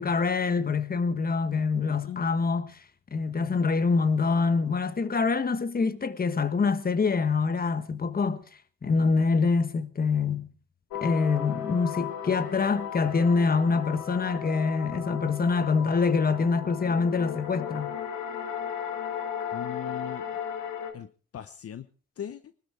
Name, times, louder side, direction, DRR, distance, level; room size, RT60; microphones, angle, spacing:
voice 1, 0.0-2.8 3.1-8.4 8.8-10.5 11.0-18.0, left 4 dB, 30° left, 1.4 m, -25 dB
voice 2, 1.9-2.2 19.5-20.3 20.9-21.9 22.2-22.4, left 9 dB, 50° left, 0.9 m, -39 dB
sound 1, 10.9-20.9, left 8 dB, 75° left, 2.7 m, -35 dB
21.0 x 12.5 x 4.7 m
cardioid pair, 90°, 30 cm